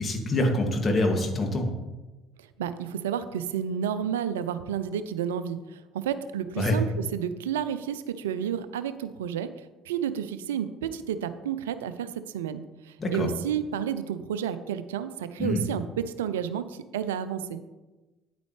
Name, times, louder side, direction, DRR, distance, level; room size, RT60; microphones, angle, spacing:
voice 1, 0.0-1.7 6.6-6.8 13.0-13.3 15.4-15.6, left 1 dB, 35° left, 2 dB, 2.2 m, -25 dB
voice 2, 2.6-9.5 9.9-12.6 13.1-17.6, right 9 dB, 85° right, 12 dB, 0.5 m, -31 dB
9.8 x 9.0 x 3.3 m, 1.1 s
hypercardioid pair, 60°, 0 cm